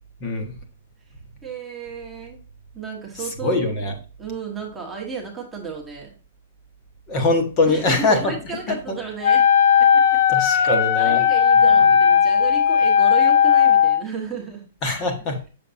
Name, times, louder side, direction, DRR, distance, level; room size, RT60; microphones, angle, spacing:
voice 1, 0.2-0.5 3.4-3.9 7.1-8.9 10.3-11.3 11.7-11.9 14.8-15.5, left 2 dB, 20° left, 1.3 m, -23 dB
voice 2, 1.4-2.4 2.7-3.6 4.2-6.1 7.7-9.5 9.8-10.2 10.5-14.7, right 5 dB, 5° right, 1.2 m, -33 dB
Wind instrument woodwind instrument, 9.2-14.0, left 8 dB, 45° left, 0.5 m, -16 dB
7.4 x 6.9 x 2.7 m
hypercardioid pair, 175°, 0 cm